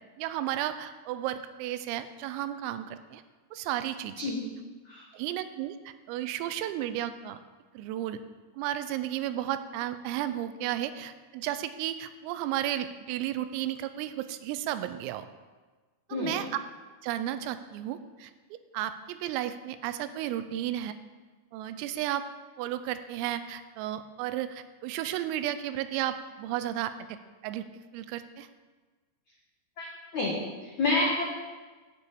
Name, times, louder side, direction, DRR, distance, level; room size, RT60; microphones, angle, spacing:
voice 1, 0.2-3.2 3.5-4.2 5.1-7.4 7.7-8.2 8.6-15.2 16.1-16.5 17.0-18.3 18.7-20.9 21.5-22.2 22.6-27.2 27.4-27.7 27.9-28.5, right 12 dB, 90° right, 11 dB, 3.3 m, -33 dB
voice 2, 30.1-31.2, left 2 dB, 85° left, -3 dB, 1.6 m, -28 dB
10.0 x 6.9 x 8.5 m, 1.3 s
omnidirectional pair, 6.0 m